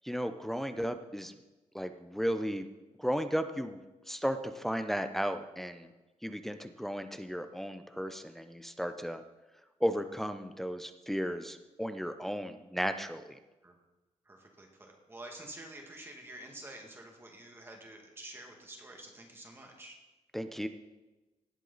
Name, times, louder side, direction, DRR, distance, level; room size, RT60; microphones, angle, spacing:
voice 1, 0.0-1.3 1.7-2.7 3.0-5.9 6.2-9.2 9.8-13.4 20.3-20.7, equal, ahead, 8 dB, 0.5 m, -34 dB
voice 2, 14.2-20.0, right 1 dB, 20° right, 1 dB, 2.0 m, -48 dB
18.0 x 8.1 x 4.0 m, 1.1 s
wide cardioid pair, 165°, 12 cm